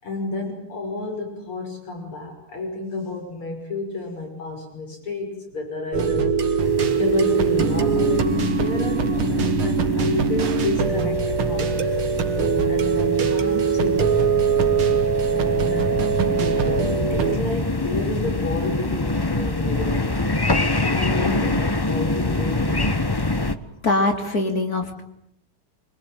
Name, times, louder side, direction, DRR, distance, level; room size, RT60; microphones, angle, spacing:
voice 1, 0.0-6.7 7.0-12.1 12.7-14.3 15.3-20.1 20.8-23.0 23.5-23.6, left 2 dB, 75° left, 2 dB, 6.9 m, -30 dB
sound 1, 5.9-17.4, right 5 dB, 75° right, 2.7 m, -21 dB
sound 2, 6.6-23.5, left 2 dB, 20° left, 0.6 m, -27 dB
voice 2, 23.8-25.0, left 2 dB, 45° left, 5 dB, 3.2 m, -23 dB
25.5 x 25.0 x 9.1 m, 0.75 s
omnidirectional pair, 2.4 m